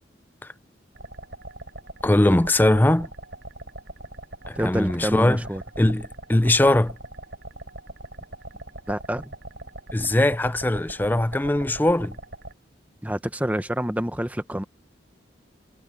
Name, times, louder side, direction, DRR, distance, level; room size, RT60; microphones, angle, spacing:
sound 1, 1.0-12.5, right 2 dB, 60° right, 4.5 m, -41 dB
voice 1, 2.0-3.1 4.5-5.4 5.8-7.0 9.9-12.2, left 1 dB, 10° left, 0.4 m, -20 dB
voice 2, 4.6-5.6 8.9-9.3 13.0-14.6, equal, 10° right, 0.8 m, -27 dB
head